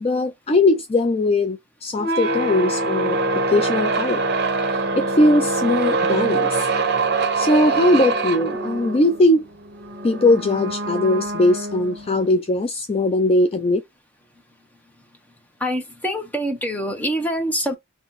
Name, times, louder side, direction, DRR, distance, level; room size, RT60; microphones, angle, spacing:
voice 1, 0.0-3.2 3.5-4.2 4.7-6.7 7.4-9.5 10.0-13.8, left 1 dB, 30° left, 0.4 m, -20 dB
sound 1, 2.0-12.3, right 3 dB, 55° right, 0.9 m, -24 dB
voice 2, 15.6-17.8, equal, 10° left, 1.0 m, -25 dB
3.3 x 3.1 x 4.1 m
head